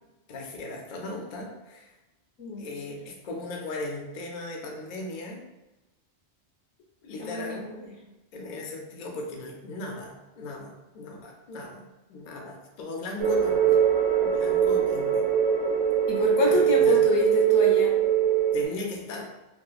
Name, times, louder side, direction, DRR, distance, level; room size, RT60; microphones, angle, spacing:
voice 1, 0.3-1.9 2.6-5.4 7.0-7.6 8.3-11.8 12.1-13.9 14.2-15.3 16.4-17.0 18.5-19.3, left 2 dB, 55° left, 1 dB, 0.5 m, -37 dB
voice 2, 7.2-7.8 16.1-17.9, left 4 dB, 85° left, -2 dB, 1.0 m, -27 dB
sound 1, 13.2-18.7, right 9 dB, 85° right, 0.9 m, -22 dB
2.9 x 2.3 x 2.3 m, 1.0 s
omnidirectional pair, 1.2 m